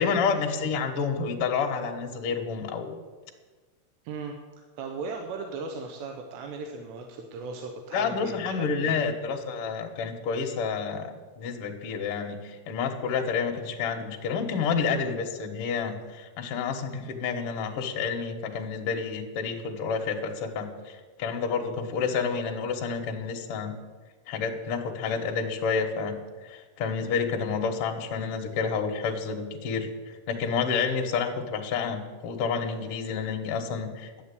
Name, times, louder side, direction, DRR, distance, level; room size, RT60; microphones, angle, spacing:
voice 1, 0.0-2.9 7.9-23.7 24.3-26.1 26.4-29.9 30.3-34.2, left 5 dB, 70° left, 3 dB, 1.3 m, -29 dB
voice 2, 4.8-8.9, right 4 dB, 90° right, 3 dB, 3.2 m, -37 dB
11.0 x 9.0 x 8.3 m, 1.4 s
omnidirectional pair, 4.7 m